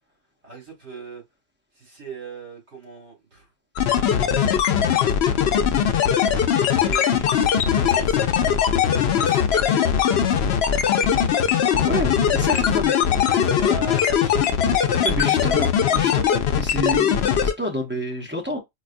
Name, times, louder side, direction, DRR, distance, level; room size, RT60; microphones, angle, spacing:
voice 1, 0.4-1.2 1.8-3.5 3.9-5.6 6.3-8.3 9.1-10.0 12.5-12.8 13.3-14.4 14.6-15.4, right 3 dB, 60° right, 2.1 m, -38 dB
sound 1, 3.8-17.5, left 8 dB, 65° left, 0.8 m, -20 dB
voice 2, 11.7-13.2 15.0-18.6, equal, 10° right, 0.5 m, -29 dB
4.7 x 2.4 x 2.5 m
omnidirectional pair, 1.3 m